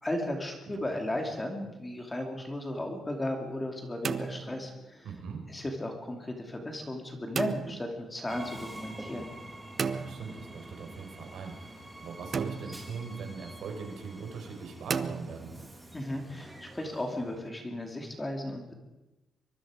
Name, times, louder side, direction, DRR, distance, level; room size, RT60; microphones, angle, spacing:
voice 1, 0.0-5.1 5.5-9.3 15.9-18.7, left 1 dB, 15° left, 3 dB, 2.5 m, -35 dB
sound 1, 0.6-1.2 3.8-5.0 7.3-7.9 9.8-10.7 12.3-13.0 14.9-15.8, right 5 dB, 35° right, 0.8 m, -35 dB
voice 2, 5.0-5.4 9.8-15.5, right 5 dB, 70° right, 3 dB, 4.8 m, -41 dB
Train, 8.3-17.5, right 1 dB, 5° right, 2.2 m, -47 dB
24.0 x 22.5 x 5.0 m, 1.0 s
wide cardioid pair, 180°, 0 cm